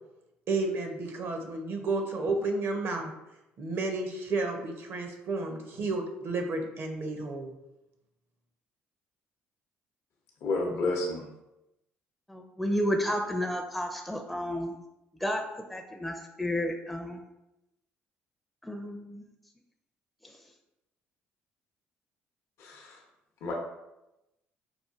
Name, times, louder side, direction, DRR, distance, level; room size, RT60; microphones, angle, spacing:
voice 1, 0.5-3.1 3.6-7.5, right 3 dB, 60° right, 4 dB, 0.6 m, -31 dB
voice 2, 10.4-11.2 22.6-23.0 23.4-23.5, left 2 dB, 70° left, -1 dB, 0.6 m, -30 dB
voice 3, 12.3-14.8 15.2-15.4 15.7-17.2 18.6-19.3 20.2-20.3, equal, ahead, 2 dB, 0.4 m, -31 dB
4.2 x 2.4 x 2.4 m, 0.92 s
supercardioid pair, 60°, 5 cm